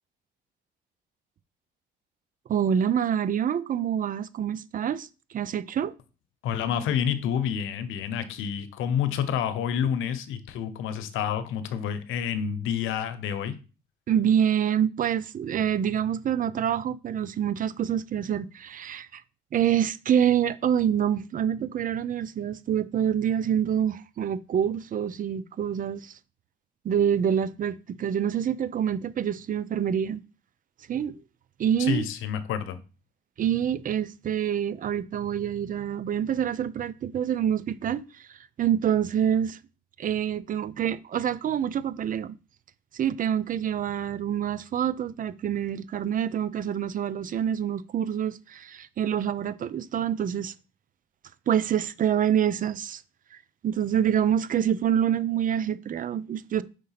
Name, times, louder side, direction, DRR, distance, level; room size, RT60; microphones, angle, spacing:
voice 1, 2.5-5.9 14.1-19.2 19.5-26.2 26.8-30.2 30.9-31.2 31.6-32.1 33.4-39.6 40.0-42.3 42.9-50.5 51.5-53.0 53.3-56.6, right 9 dB, 45° right, 0.5 m, -26 dB
voice 2, 6.4-13.6 31.8-32.8, left 8 dB, 80° left, 0.8 m, -28 dB
5.3 x 3.8 x 5.7 m
cardioid pair, 95°, 20 cm